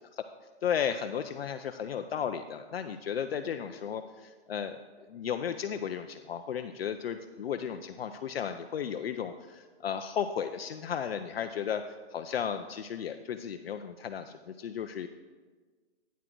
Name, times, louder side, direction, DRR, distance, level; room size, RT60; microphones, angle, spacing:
voice 1, 0.6-4.8 5.1-15.1, left 8 dB, 65° left, 8 dB, 0.5 m, -34 dB
9.2 x 6.1 x 4.5 m, 1.4 s
hypercardioid pair, 175°, 32 cm